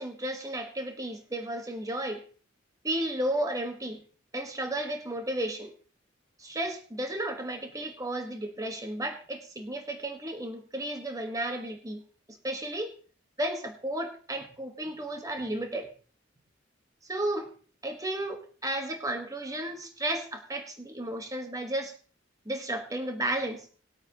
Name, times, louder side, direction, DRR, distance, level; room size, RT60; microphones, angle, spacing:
voice 1, 0.0-2.2 2.8-4.0 4.3-5.7 6.4-12.0 12.3-12.9 13.4-15.9 17.0-17.5 17.8-21.9 22.4-23.6, right 1 dB, 20° right, 4 dB, 1.4 m, -33 dB
20.0 x 8.7 x 2.9 m, 0.40 s
head